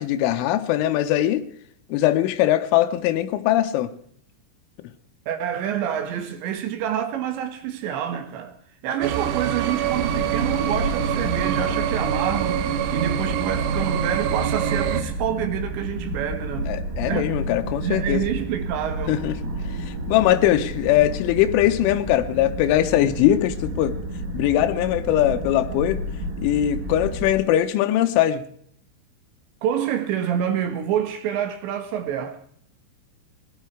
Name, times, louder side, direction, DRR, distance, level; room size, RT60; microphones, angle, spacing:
voice 1, 0.0-1.4 1.9-3.9 16.7-18.2 19.1-19.4 20.1-24.0 24.3-26.0 26.4-28.4, left 13 dB, 80° left, 3.4 m, -21 dB
voice 2, 5.3-8.5 8.8-12.6 12.9-16.7 17.1-17.3 17.8-19.2 29.6-32.4, right 9 dB, 70° right, 3.6 m, -27 dB
sound 1, 9.0-15.0, right 9 dB, 90° right, 3.5 m, -25 dB
sound 2, 9.8-27.3, right 1 dB, 50° right, 4.0 m, -31 dB
19.0 x 12.0 x 4.6 m
omnidirectional pair, 5.6 m